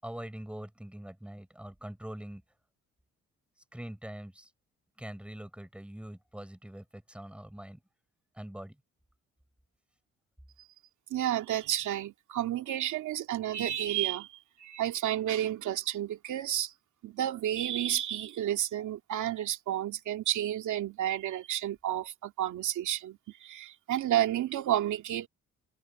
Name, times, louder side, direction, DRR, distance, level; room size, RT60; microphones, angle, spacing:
voice 1, 0.0-2.4 3.7-4.5 5.0-7.8 8.4-8.8, right 1 dB, 5° right, 5.7 m, -43 dB
voice 2, 11.1-14.3 14.6-16.7 17.0-25.3, right 12 dB, 75° right, 2.3 m, -31 dB
cardioid pair, 90°, 30 cm